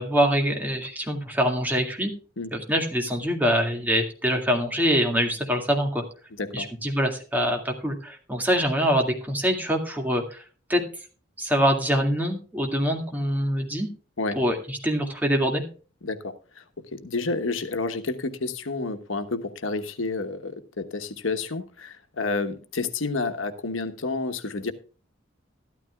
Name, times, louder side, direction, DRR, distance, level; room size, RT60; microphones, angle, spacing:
voice 1, 0.0-2.1 2.5-6.0 6.5-10.4 10.7-10.8 11.4-13.9 14.4-15.6, equal, 10° right, 2 dB, 2.1 m, -24 dB
voice 2, 16.0-16.6 16.9-24.7, left 3 dB, 90° left, 9 dB, 1.2 m, -30 dB
13.5 x 12.5 x 2.3 m, 0.37 s
head